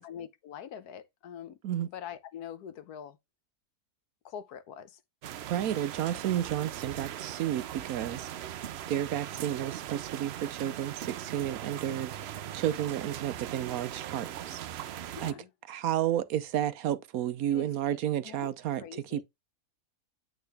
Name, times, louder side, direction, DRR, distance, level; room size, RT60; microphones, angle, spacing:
voice 1, 0.0-1.6 1.9-3.2 4.2-5.0 9.3-9.5 15.1-15.5 17.5-18.0 18.2-18.5 18.8-19.2, left 9 dB, 80° left, 1.3 m, -44 dB
sound 1, 5.2-15.3, right 11 dB, 90° right, 0.5 m, -40 dB
voice 2, 5.5-8.6 8.9-14.6 15.2-15.3 15.7-19.2, right 11 dB, 70° right, 1.0 m, -32 dB
8.6 x 3.5 x 3.4 m
omnidirectional pair, 1.7 m